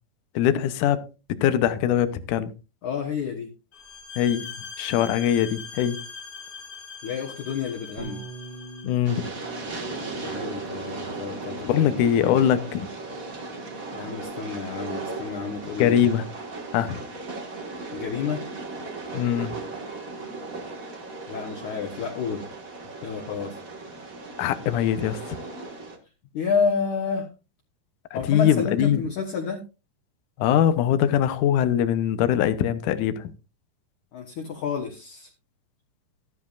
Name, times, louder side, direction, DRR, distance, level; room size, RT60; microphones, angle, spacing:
voice 1, 0.4-2.5 4.2-4.5 4.8-6.0 8.8-9.3 11.7-12.9 15.8-16.2 16.7-17.0 19.1-19.5 24.4-25.4 28.1-29.0 30.4-33.3, left 10 dB, 80° left, 1.8 m, -22 dB
voice 2, 2.8-3.5 7.0-8.2 10.2-12.4 13.9-16.0 17.9-18.4 21.3-22.4 23.0-23.6 26.3-27.3 28.1-29.6 34.1-35.3, left 5 dB, 60° left, 2.2 m, -30 dB
sound 1, 3.7-9.0, left 5 dB, 30° left, 2.1 m, -41 dB
Bass guitar, 8.0-14.2, right 2 dB, 85° right, 4.2 m, -44 dB
Train, 9.0-26.0, right 3 dB, 65° right, 0.8 m, -37 dB
13.5 x 12.5 x 2.5 m
omnidirectional pair, 4.8 m